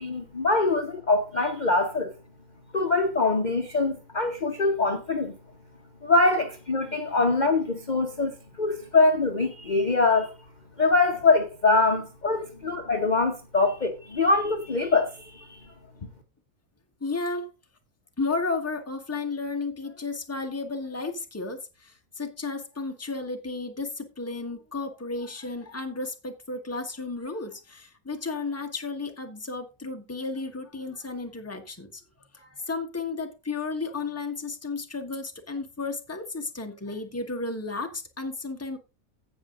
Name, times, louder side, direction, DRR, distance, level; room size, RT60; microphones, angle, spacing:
voice 1, 0.0-2.1 2.7-5.4 6.0-10.3 10.8-15.6, left 3 dB, 35° left, 1.1 m, -23 dB
voice 2, 17.0-17.5 18.2-32.0 32.3-38.8, left 3 dB, 10° left, 1.3 m, -33 dB
16.0 x 5.4 x 3.7 m
omnidirectional pair, 1.5 m